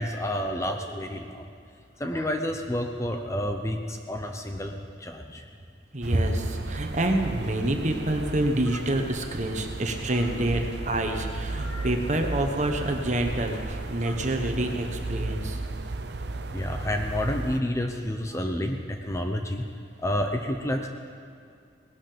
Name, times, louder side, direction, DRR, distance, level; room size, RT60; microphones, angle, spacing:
voice 1, 0.0-1.4 2.0-4.7 5.0-5.5 11.6-11.9 14.0-14.2 16.5-19.6 20.0-20.9, left 1 dB, 15° left, 4 dB, 0.7 m, -29 dB
voice 2, 5.9-15.6, right 1 dB, 40° right, 4 dB, 1.3 m, -27 dB
sound 1, 6.0-17.6, right 2 dB, 60° right, 0.7 m, -35 dB
19.0 x 12.0 x 5.2 m, 2.4 s
head